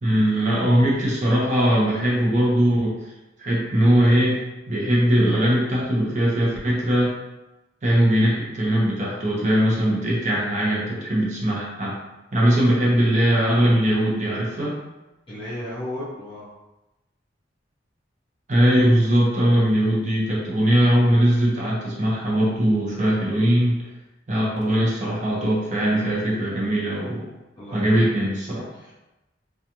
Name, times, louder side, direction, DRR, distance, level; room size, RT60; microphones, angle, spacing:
voice 1, 0.0-2.9 3.4-4.4 4.7-7.1 7.8-12.0 12.3-14.8 18.5-23.8 24.3-27.3 27.7-28.7, equal, 40° right, -5 dB, 0.8 m, -20 dB
voice 2, 15.3-16.5 27.6-27.8 28.7-28.9, left 1 dB, 30° left, -9 dB, 0.6 m, -34 dB
2.4 x 2.4 x 2.8 m, 1.0 s
head